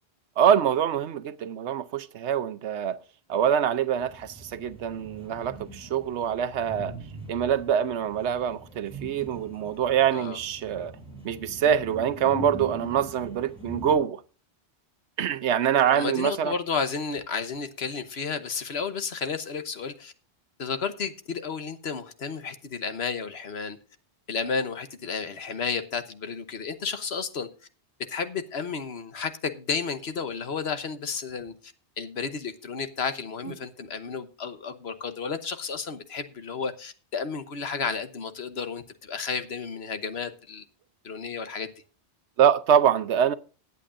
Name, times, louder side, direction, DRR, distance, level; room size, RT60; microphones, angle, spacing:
voice 1, 0.4-3.0 3.3-7.0 7.3-10.9 11.2-14.2 15.2-16.5 42.4-43.3, right 9 dB, 85° right, 1.0 m, -24 dB
sound 1, 4.0-14.0, equal, 5° right, 5.2 m, -42 dB
voice 2, 15.9-20.1 20.6-23.8 24.3-27.5 28.1-40.6 41.0-41.7, left 5 dB, 70° left, 1.3 m, -32 dB
20.0 x 8.3 x 2.6 m
omnidirectional pair, 1.1 m